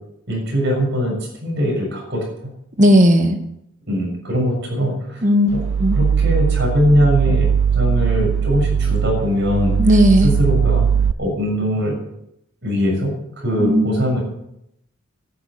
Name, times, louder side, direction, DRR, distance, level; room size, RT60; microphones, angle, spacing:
voice 1, 0.3-2.2 3.9-5.2 5.5-5.6 5.9-7.5 7.7-9.8 10.2-10.8 11.2-11.9 12.6-13.1 13.4-14.2, equal, 55° right, 0 dB, 6.8 m, -21 dB
voice 2, 2.8-3.4 5.2-5.5 5.8-6.0 9.8-10.4 13.6-14.0, equal, 35° right, 5 dB, 1.9 m, -14 dB
sound 1, 5.5-11.1, right 7 dB, 85° right, 0.4 m, -19 dB
12.0 x 9.6 x 9.1 m, 0.79 s
head